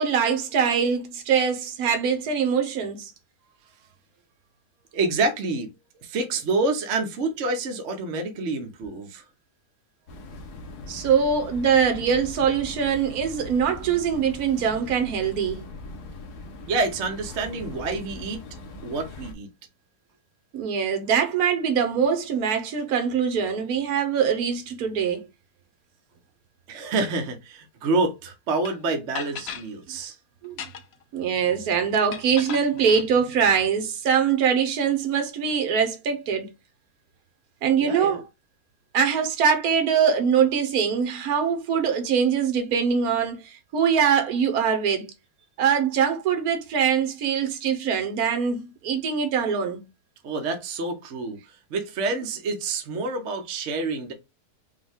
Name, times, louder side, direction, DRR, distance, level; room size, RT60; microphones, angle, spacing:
voice 1, 0.0-3.1 10.9-15.6 20.5-25.2 30.4-30.6 31.1-36.5 37.6-38.2 38.9-45.1 45.6-49.8, right 7 dB, 70° right, 1.4 m, -23 dB
voice 2, 4.9-5.7 6.0-9.2 16.7-18.5 18.8-19.5 26.7-30.1 37.8-38.2 50.2-51.4 51.7-54.1, right 3 dB, 55° right, 1.0 m, -27 dB
sound 1, 10.1-19.3, left 2 dB, 85° left, 1.4 m, -40 dB
sound 2, 28.6-28.7 29.1-29.7 30.4-31.0 32.1-33.1, left 8 dB, 65° left, 0.6 m, -36 dB
5.2 x 2.3 x 3.5 m
omnidirectional pair, 1.6 m